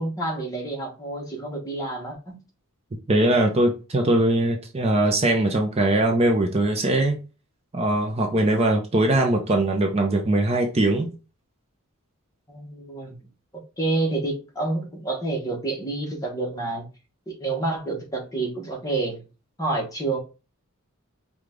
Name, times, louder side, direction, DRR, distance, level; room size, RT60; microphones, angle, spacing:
voice 1, 0.0-2.4 12.5-13.3 13.5-16.8 17.3-19.2 19.6-20.2, right 2 dB, 15° left, 1.1 m, -28 dB
voice 2, 3.1-7.2 7.7-11.1, right 1 dB, 30° right, 0.6 m, -21 dB
4.8 x 2.4 x 3.6 m
head